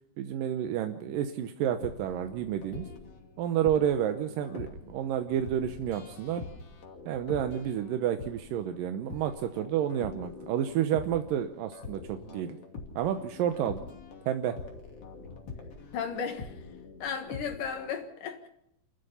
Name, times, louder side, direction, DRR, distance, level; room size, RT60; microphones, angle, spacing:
voice 1, 0.2-2.9 3.4-6.4 7.1-12.6 13.0-13.8 14.3-14.6, right 10 dB, 90° right, 2.7 m, -30 dB
sound 1, 1.7-18.0, left 4 dB, 45° left, 3.5 m, -45 dB
voice 2, 15.9-16.6 17.0-18.5, left 6 dB, 75° left, 3.2 m, -35 dB
28.5 x 13.5 x 6.9 m
omnidirectional pair, 3.8 m